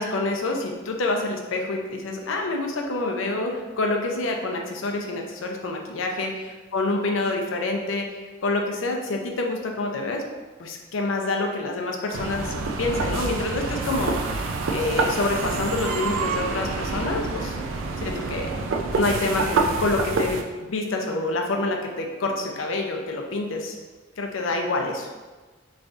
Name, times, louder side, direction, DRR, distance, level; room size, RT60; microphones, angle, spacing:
voice 1, 0.0-10.2 10.6-14.2 14.7-17.6 18.0-18.5 18.9-20.4 20.7-23.7 24.2-25.1, left 2 dB, 80° left, 2 dB, 0.5 m, -27 dB
sound 1, 12.1-20.4, right 3 dB, 80° right, 0.4 m, -27 dB
3.1 x 2.6 x 3.5 m, 1.3 s
head